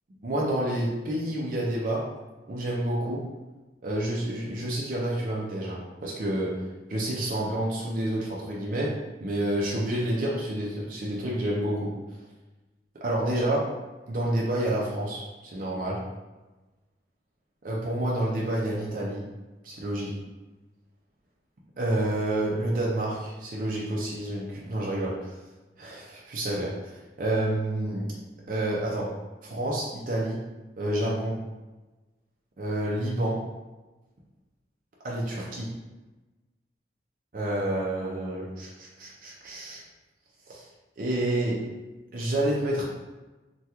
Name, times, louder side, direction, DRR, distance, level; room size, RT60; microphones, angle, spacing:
voice 1, 0.2-2.1 2.5-3.3 3.8-11.9 13.0-13.7 14.1-16.1 17.6-19.3 19.6-20.1 21.8-25.4 25.8-28.1 28.5-29.2 29.4-30.5 30.8-31.4 32.6-33.5 35.0-35.8 37.3-39.8 40.5-40.7 41.0-41.7 42.1-42.8, right 1 dB, 50° right, -4 dB, 0.5 m, -29 dB
2.9 x 2.2 x 3.4 m, 1.1 s
head